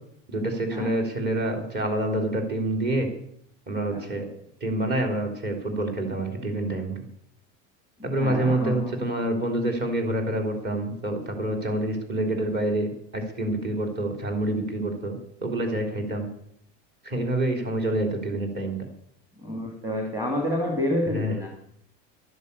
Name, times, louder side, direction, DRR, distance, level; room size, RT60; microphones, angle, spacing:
voice 1, 0.3-3.1 3.7-4.3 4.6-7.0 8.0-16.3 17.0-18.8 21.1-21.3, right 1 dB, 30° right, 2 dB, 3.8 m, -27 dB
voice 2, 8.0-8.9 19.4-21.5, left 1 dB, 10° right, 1 dB, 2.4 m, -28 dB
12.5 x 10.5 x 8.5 m, 0.69 s
cardioid pair, 160°, 34 cm